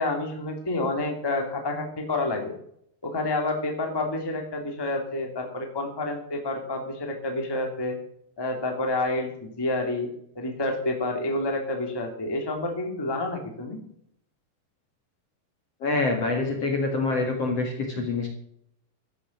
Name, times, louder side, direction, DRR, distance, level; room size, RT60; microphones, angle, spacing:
voice 1, 0.0-2.5 3.0-8.0 8.4-13.8, left 2 dB, 10° left, 2 dB, 1.8 m, -29 dB
voice 2, 15.8-18.3, left 3 dB, 45° left, 2 dB, 2.4 m, -26 dB
14.0 x 9.3 x 7.2 m, 0.69 s
omnidirectional pair, 4.9 m